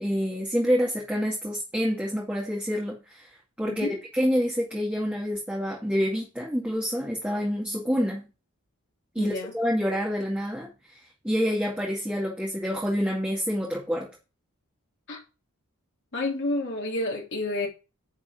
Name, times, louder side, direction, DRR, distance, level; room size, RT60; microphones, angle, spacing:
voice 1, 0.0-3.3 3.6-3.9 4.1-8.3 9.1-11.0 11.2-14.1, equal, 5° right, 2.4 m, -27 dB
voice 2, 3.7-4.0 9.2-9.5 15.1-15.2 16.1-17.7, left 2 dB, 50° left, 3.3 m, -30 dB
10.5 x 4.8 x 6.0 m
head